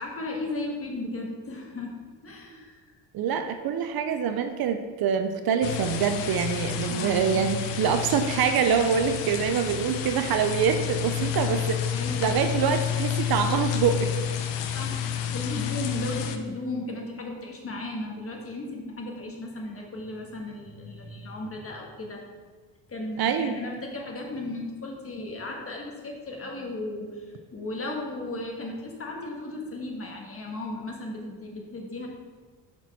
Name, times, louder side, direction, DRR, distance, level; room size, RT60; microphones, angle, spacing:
voice 1, 0.0-1.9 2.2-2.8 6.9-7.5 11.9-12.4 14.7-22.2 22.9-32.1, left 2 dB, 30° left, 0 dB, 1.3 m, -35 dB
voice 2, 3.1-11.9 12.2-14.1 23.2-23.6, right 7 dB, 55° right, 8 dB, 0.6 m, -25 dB
sound 1, 5.6-16.4, left 9 dB, 70° left, 0.7 m, -30 dB
6.0 x 4.5 x 4.1 m, 1.4 s
cardioid pair, 90°, 45 cm